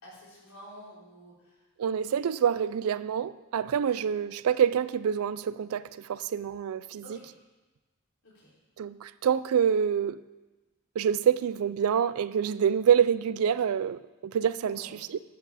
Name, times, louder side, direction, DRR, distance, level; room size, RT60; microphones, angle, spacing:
voice 1, 0.0-1.6 7.0-7.3 8.2-8.5 14.6-14.9, equal, 75° left, 3.8 m, -49 dB
voice 2, 1.8-7.0 8.8-10.2 11.0-15.2, right 8 dB, 70° right, 0.3 m, -26 dB
10.5 x 8.3 x 4.2 m
head